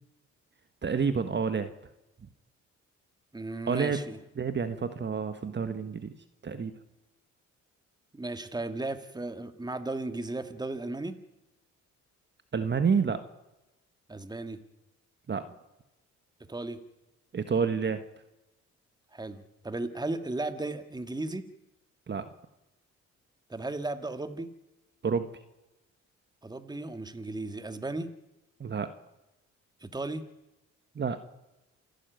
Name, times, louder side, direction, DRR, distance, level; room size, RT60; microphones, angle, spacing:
voice 1, 0.8-1.7 2.2-2.3 3.7-4.0 4.4-6.1 6.4-6.7 12.5-13.2 15.3-15.5 17.3-18.0 22.1-22.3 25.0-25.2 28.6-28.9 30.9-31.2, right 6 dB, 35° right, 10 dB, 1.5 m, -29 dB
voice 2, 3.3-4.2 8.1-11.2 14.1-14.6 16.5-16.8 19.1-21.5 23.5-24.5 26.4-28.1 29.8-30.2, right 2 dB, 15° right, 10 dB, 1.9 m, -35 dB
28.0 x 12.5 x 9.4 m, 0.98 s
cardioid pair, 90°, 30 cm